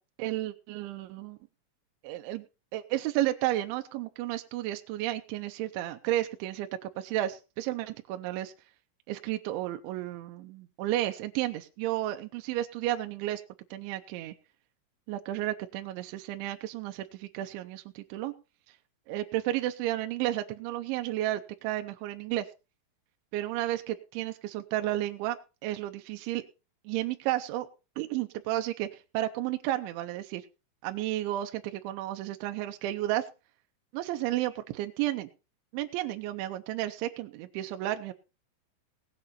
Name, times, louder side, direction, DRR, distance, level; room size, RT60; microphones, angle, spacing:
voice 1, 0.2-1.4 2.0-2.5 2.7-8.5 9.1-13.4 13.7-14.3 15.1-18.3 19.1-22.5 23.3-25.4 25.6-26.4 26.9-27.7 28.0-30.4 30.8-33.3 33.9-35.3 35.7-38.1, right 14 dB, 80° right, 7 dB, 3.0 m, -32 dB
18.0 x 8.5 x 4.3 m, 0.31 s
omnidirectional pair, 5.8 m